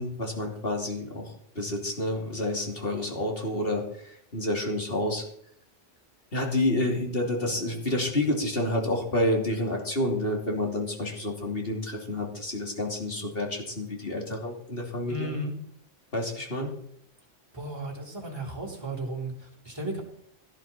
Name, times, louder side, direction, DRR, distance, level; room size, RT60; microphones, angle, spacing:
voice 1, 0.0-5.2 6.3-15.3 16.1-16.7, left 1 dB, 50° left, 0 dB, 3.2 m, -29 dB
voice 2, 7.4-8.3 15.1-15.5 17.5-20.0, right 1 dB, 20° right, -2 dB, 3.7 m, -36 dB
17.5 x 12.5 x 4.4 m, 0.66 s
omnidirectional pair, 1.3 m